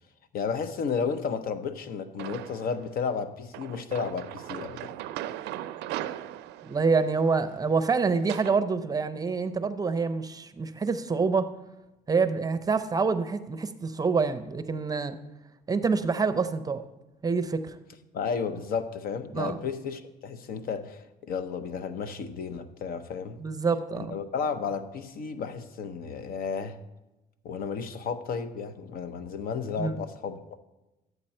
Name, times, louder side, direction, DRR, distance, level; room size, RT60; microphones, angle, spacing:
voice 1, 0.3-4.9 18.1-23.4 24.0-26.8 27.4-30.6, left 6 dB, 60° left, 11 dB, 0.8 m, -33 dB
sound 1, 2.2-2.8 3.5-8.6, right 13 dB, 85° right, 0.4 m, -39 dB
voice 2, 6.7-11.5 12.1-15.2 15.7-16.8 17.2-17.8 19.3-19.6 23.4-24.2 29.8-30.0, right 4 dB, 20° right, 10 dB, 0.6 m, -26 dB
12.0 x 8.1 x 4.3 m, 1.0 s
cardioid pair, 110°, 17 cm